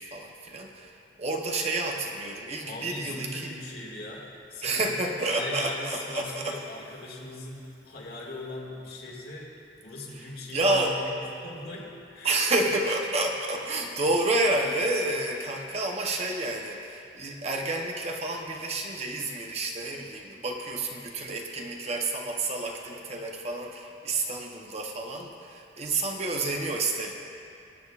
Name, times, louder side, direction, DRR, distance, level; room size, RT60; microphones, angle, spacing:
voice 1, 0.0-3.5 4.6-6.6 10.5-11.0 12.2-27.1, right 2 dB, 35° right, 1 dB, 0.8 m, -29 dB
voice 2, 2.6-4.8 5.3-11.1 11.4-12.4, left 2 dB, 55° left, -3 dB, 2.1 m, -40 dB
22.5 x 8.8 x 2.4 m, 2.6 s
head